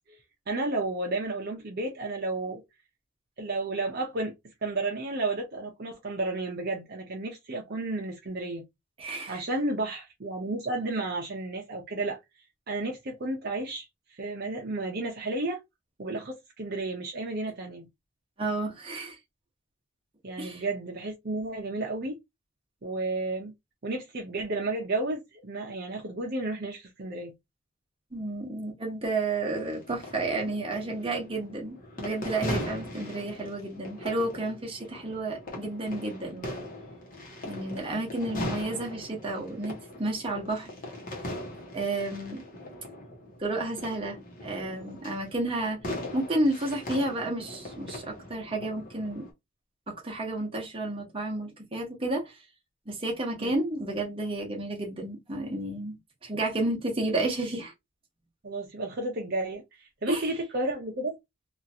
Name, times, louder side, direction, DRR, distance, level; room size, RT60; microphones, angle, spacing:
voice 1, 0.5-2.6 3.4-4.3 4.6-8.6 9.3-12.2 12.7-15.6 16.0-17.9 20.2-22.2 22.8-23.5 23.8-27.3 53.4-53.5 58.4-61.2, right 2 dB, 50° right, 0.7 m, -32 dB
voice 2, 9.0-9.4 18.4-19.2 20.4-20.6 28.1-36.5 37.4-40.7 41.7-42.4 43.4-45.8 46.1-49.3 49.9-52.4 52.9-55.9 56.2-57.7 60.1-60.3, right 2 dB, 25° right, 1.0 m, -31 dB
sound 1, 29.5-49.3, left 1 dB, 45° left, 1.0 m, -40 dB
2.9 x 2.4 x 2.7 m
head